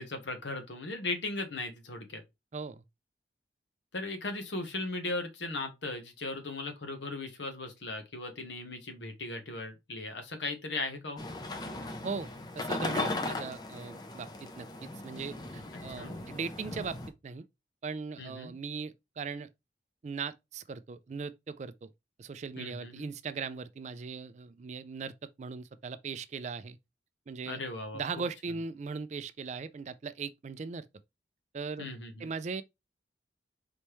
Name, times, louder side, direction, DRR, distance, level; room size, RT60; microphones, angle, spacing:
voice 1, 0.0-2.2 3.9-11.2 16.0-16.2 18.2-18.5 22.6-23.1 27.5-28.0 31.8-32.3, left 2 dB, 85° left, 1.1 m, -37 dB
voice 2, 2.5-2.8 12.0-12.3 12.5-17.0 17.2-17.4 17.8-19.5 20.0-21.9 22.2-26.8 27.3-27.6 27.9-30.9 31.5-31.9 32.2-32.6, right 5 dB, 40° right, 0.3 m, -39 dB
sound 1, 11.2-17.1, left 2 dB, 25° left, 0.6 m, -37 dB
4.2 x 3.3 x 3.1 m
head